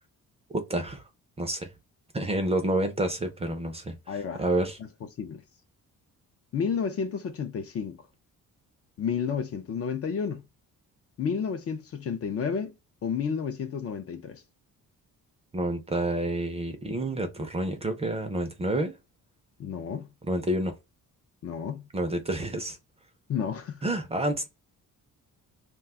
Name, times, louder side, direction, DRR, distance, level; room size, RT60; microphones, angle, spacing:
voice 1, 0.5-1.0 1.4-1.7 2.1-4.8 15.5-18.9 20.2-20.7 21.9-22.8 23.8-24.5, right 1 dB, 20° right, 0.5 m, -29 dB
voice 2, 4.1-4.4 5.2-5.4 6.5-8.0 9.0-10.4 11.2-12.7 13.0-14.4 19.6-20.1 21.4-21.9 23.3-23.8, left 6 dB, 45° left, 0.5 m, -31 dB
2.4 x 2.2 x 3.5 m
cardioid pair, 160°, 34 cm